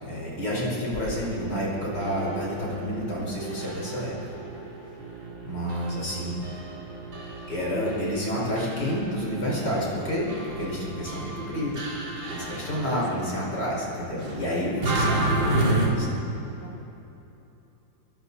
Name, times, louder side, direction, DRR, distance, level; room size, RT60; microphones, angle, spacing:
voice 1, 0.0-4.1 5.4-6.4 7.5-11.8 12.3-16.2, equal, 55° left, -5 dB, 6.0 m, -29 dB
sound 1, 1.1-13.5 14.1-15.9, right 2 dB, 75° right, 3.4 m, -32 dB
voice 2, 12.8-13.3 14.8-15.2 16.6-16.8, right 2 dB, 30° right, 0 dB, 1.1 m, -38 dB
28.0 x 23.0 x 4.3 m, 3.0 s
omnidirectional pair, 2.1 m